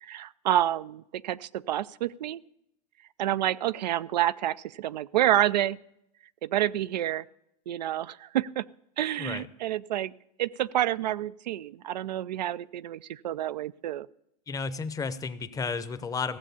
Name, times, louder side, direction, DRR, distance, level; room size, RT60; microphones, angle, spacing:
voice 1, 0.0-2.4 3.2-5.8 6.4-7.2 7.7-8.6 9.0-10.1 10.4-14.1, right 12 dB, 85° right, 17 dB, 0.5 m, -28 dB
voice 2, 14.5-16.4, left 5 dB, 15° left, 13 dB, 0.7 m, -32 dB
16.0 x 7.3 x 6.9 m, 0.77 s
hypercardioid pair, 115°, 21 cm